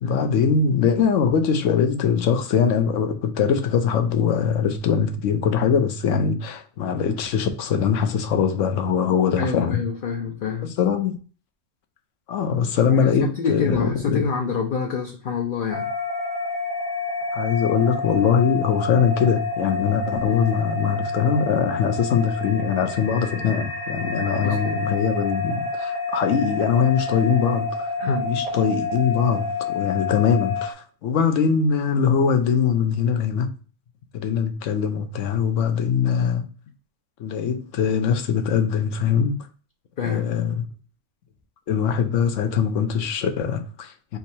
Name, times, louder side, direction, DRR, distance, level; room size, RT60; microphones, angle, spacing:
voice 1, 0.0-9.8 10.8-11.2 12.3-14.2 17.3-27.9 28.2-33.5 34.1-36.4 37.2-39.5 40.0-40.7 41.7-44.2, left 7 dB, 75° left, 1.0 m, -22 dB
voice 2, 9.4-10.7 12.9-15.9 24.4-24.8 28.0-28.3 40.0-40.3, left 5 dB, 55° left, 0.6 m, -27 dB
sound 1, 15.7-30.7, left 3 dB, 5° right, 0.7 m, -29 dB
3.6 x 2.7 x 4.2 m
omnidirectional pair, 1.3 m